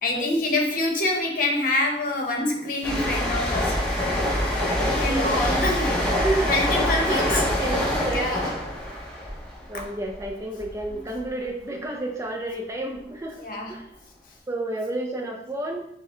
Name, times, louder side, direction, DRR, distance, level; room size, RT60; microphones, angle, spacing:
voice 1, 0.0-3.8 4.8-6.0 6.4-7.4 8.1-8.5 9.7-9.9 13.4-13.9, left 2 dB, 50° left, 0 dB, 0.9 m, -26 dB
sound 1, 2.8-10.3 10.6-10.9, left 1 dB, 5° left, 0.8 m, -25 dB
voice 2, 6.1-8.3 9.7-13.9 14.5-15.9, right 2 dB, 15° right, 1 dB, 0.4 m, -31 dB
6.2 x 2.1 x 3.8 m, 0.78 s
head